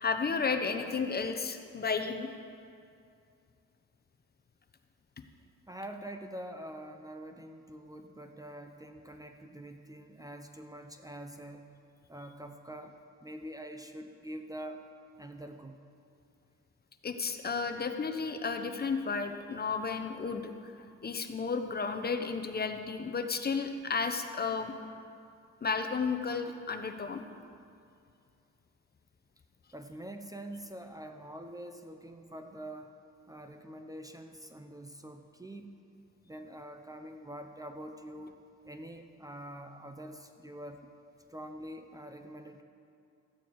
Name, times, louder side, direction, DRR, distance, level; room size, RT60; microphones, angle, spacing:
voice 1, 0.0-2.3 17.0-20.7 21.0-24.7 25.6-27.2, left 5 dB, 30° left, 7 dB, 0.8 m, -33 dB
voice 2, 5.7-11.7 12.1-13.0 13.2-14.9 15.2-15.8 29.7-32.9 33.3-35.8 36.2-40.8 41.3-42.6, right 1 dB, 10° right, 6 dB, 0.7 m, -45 dB
14.5 x 9.0 x 4.7 m, 2.4 s
cardioid pair, 90°, 30 cm